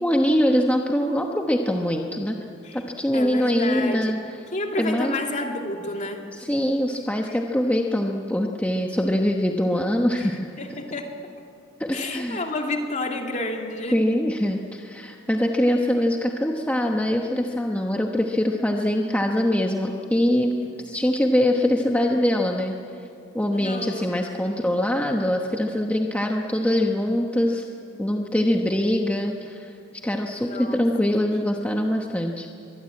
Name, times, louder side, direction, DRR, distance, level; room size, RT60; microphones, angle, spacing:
voice 1, 0.0-2.4 2.7-4.2 4.8-5.2 6.3-10.5 11.8-12.4 13.9-20.6 20.8-23.1 23.3-27.7 28.0-29.8 30.0-32.5, left 1 dB, 5° left, 1 dB, 1.0 m, -23 dB
voice 2, 3.1-4.1 4.5-6.3 10.2-10.3 10.6-11.1 11.9-14.0 23.5-24.5 30.3-30.8 31.3-31.6, left 2 dB, 35° left, 2 dB, 2.5 m, -30 dB
23.0 x 21.5 x 8.7 m, 2.5 s
head